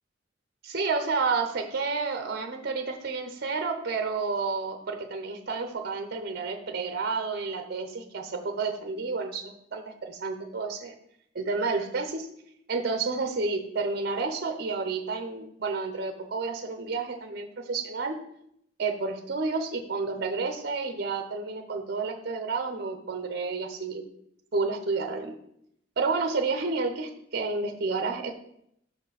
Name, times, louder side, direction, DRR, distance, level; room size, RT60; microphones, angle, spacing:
voice 1, 0.6-10.9 11.3-12.3 12.7-18.2 18.8-24.0 24.5-25.3 26.0-28.3, right 4 dB, 55° right, 6 dB, 0.7 m, -30 dB
5.9 x 4.4 x 5.8 m, 0.73 s
head